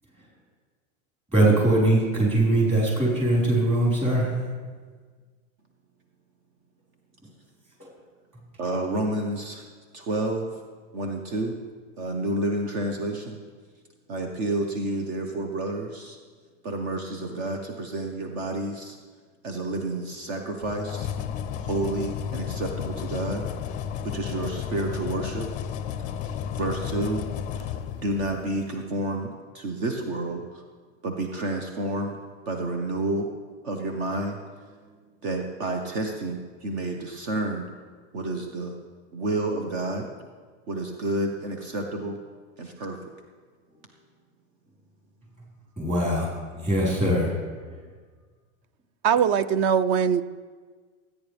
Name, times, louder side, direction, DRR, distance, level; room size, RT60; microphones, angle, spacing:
voice 1, 1.3-4.4 45.8-46.3 46.6-47.4, right 1 dB, 15° right, 5.0 m, -21 dB
voice 2, 8.6-9.6 9.9-10.5 10.9-11.5 12.0-13.4 14.1-16.2 16.6-18.9 19.4-21.1 21.7-23.4 24.0-25.5 26.5-27.2 27.6-27.7 28.0-30.6 31.0-32.2 32.4-33.3 33.6-34.4 35.2-37.7 38.1-38.7 39.1-40.1 40.7-42.2 42.6-43.0, right 2 dB, 55° right, 1.5 m, -30 dB
sound 1, 20.6-28.6, left 8 dB, 20° left, 0.5 m, -33 dB
voice 3, 49.0-50.2, right 7 dB, 35° right, 0.5 m, -21 dB
25.0 x 9.8 x 3.5 m
supercardioid pair, 150°, 39 cm